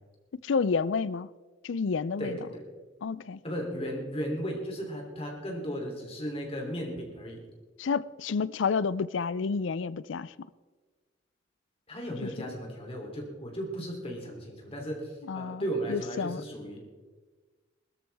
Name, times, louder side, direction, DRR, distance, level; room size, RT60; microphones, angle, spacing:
voice 1, 0.4-1.3 1.6-2.4 3.0-3.4 7.8-10.3 12.2-12.3 15.3-15.6 15.9-16.4, left 5 dB, 70° left, 0.4 m, -29 dB
voice 2, 2.2-2.6 3.4-7.4 11.9-16.8, equal, 30° left, 3.1 m, -35 dB
21.0 x 13.5 x 3.5 m
head